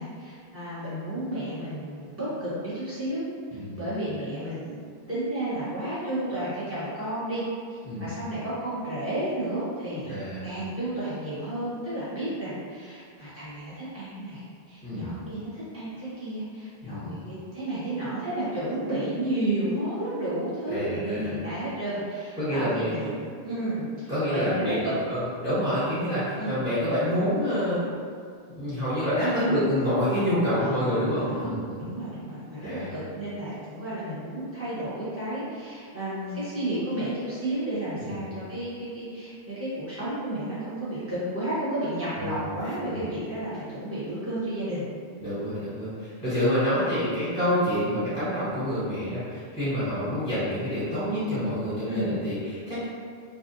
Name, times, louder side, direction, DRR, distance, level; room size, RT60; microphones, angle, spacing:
voice 1, 0.0-3.2 3.8-4.8 5.1-7.4 7.7-14.4 14.7-24.9 26.4-26.7 29.2-29.6 30.5-44.9 51.9-52.2, right 1 dB, 15° right, -12 dB, 0.9 m, -32 dB
voice 2, 10.0-10.5 14.8-15.2 16.8-17.2 20.7-21.4 22.4-22.9 24.1-27.8 28.5-31.8 32.6-32.9 38.0-38.2 42.2-42.3 45.2-52.8, equal, 5° left, -15 dB, 1.1 m, -27 dB
2.5 x 2.2 x 2.6 m, 2.1 s
omnidirectional pair, 1.1 m